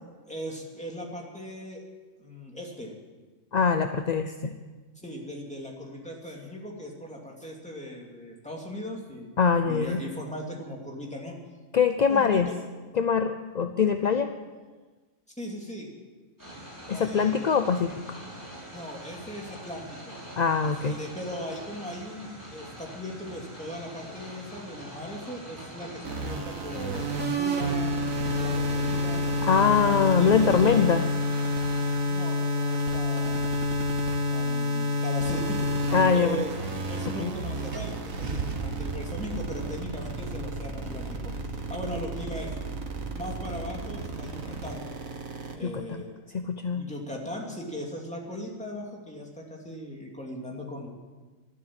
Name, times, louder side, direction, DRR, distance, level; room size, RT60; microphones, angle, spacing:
voice 1, 0.3-1.8 2.2-2.9 5.0-9.3 9.7-11.3 12.1-12.6 15.4-15.9 16.9-17.5 18.7-20.2 20.6-27.1 27.3-27.9 28.3-29.2 29.7-30.9 32.0-33.5 34.3-36.5 36.9-42.6 43.1-44.8 45.5-46.2 46.7-50.9, equal, 5° left, -1 dB, 2.7 m, -38 dB
voice 2, 3.5-4.5 9.4-10.0 11.7-12.5 12.9-14.3 16.9-18.2 20.4-21.0 29.4-31.0 35.9-36.4 37.2-37.3 45.6-46.0 46.3-46.8, left 6 dB, 45° left, 8 dB, 0.6 m, -23 dB
sound 1, 16.4-32.0, right 1 dB, 15° right, 6.2 m, -44 dB
sound 2, 26.1-45.5, left 1 dB, 80° right, 1.9 m, -29 dB
Car / Engine starting, 37.0-37.1 37.7-43.9, right 4 dB, 45° right, 1.3 m, -37 dB
12.5 x 12.5 x 8.7 m, 1.3 s
omnidirectional pair, 1.4 m